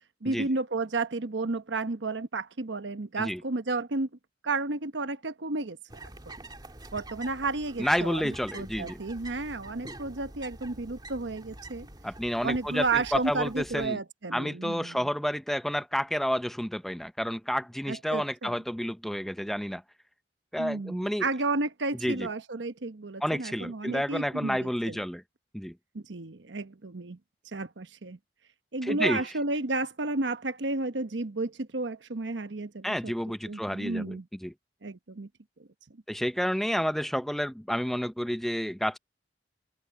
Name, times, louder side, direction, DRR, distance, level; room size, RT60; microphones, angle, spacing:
voice 1, 0.2-4.1 4.4-5.8 6.0-6.1 6.9-11.9 12.4-15.1 17.9-18.6 20.6-25.0 25.9-27.2 27.4-28.2 28.7-33.1 33.5-34.3 34.8-35.3, right 3 dB, 80° right, 1.0 m, -32 dB
sound 1, 5.9-13.9, right 2 dB, 25° right, 2.6 m, -46 dB
voice 2, 7.8-9.0 12.0-14.0 14.3-19.8 20.5-21.3 22.0-22.3 23.2-25.2 25.5-25.7 28.8-29.2 32.8-34.5 36.1-39.0, equal, ahead, 0.6 m, -30 dB
open air
head